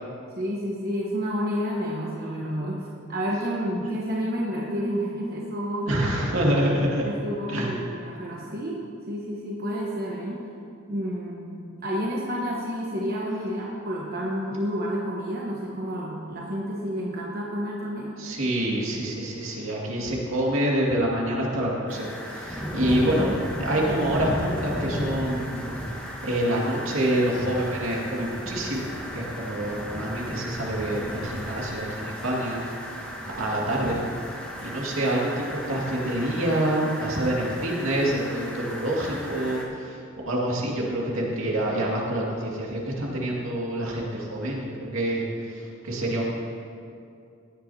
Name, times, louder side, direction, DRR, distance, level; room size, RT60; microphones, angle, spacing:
voice 1, 0.3-6.0 6.7-10.4 10.9-18.1 22.9-23.1, equal, 50° right, -4 dB, 1.1 m, -30 dB
voice 2, 5.9-7.0 7.5-7.7 18.2-25.6 26.2-32.6 33.4-34.0 34.6-40.0 40.3-46.2, right 1 dB, 80° right, -3 dB, 2.2 m, -27 dB
sound 1, 21.9-39.6, equal, 10° left, 1.4 m, -34 dB
16.0 x 10.5 x 2.8 m, 2.5 s
head